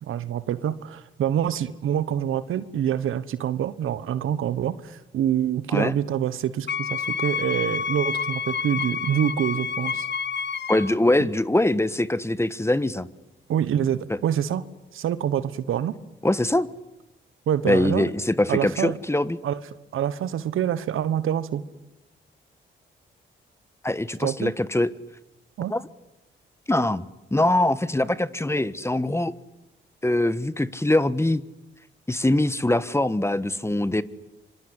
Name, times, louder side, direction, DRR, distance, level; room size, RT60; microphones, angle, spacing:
voice 1, 0.0-10.1 13.5-14.6 14.9-15.9 17.5-18.1 18.5-19.0 19.4-19.6 19.9-21.6 24.2-24.5 25.6-25.7, right 10 dB, 80° right, 15 dB, 1.3 m, -26 dB
Wind instrument woodwind instrument, 6.7-11.0, left 6 dB, 55° left, 1.3 m, -29 dB
voice 2, 10.7-13.1 16.2-16.7 17.6-19.4 23.8-24.9 25.7-25.8 26.7-27.1 27.3-29.3 30.0-31.4 32.1-34.0, left 1 dB, 10° left, 15 dB, 1.4 m, -23 dB
26.0 x 23.5 x 9.7 m, 0.94 s
cardioid pair, 60°, 21 cm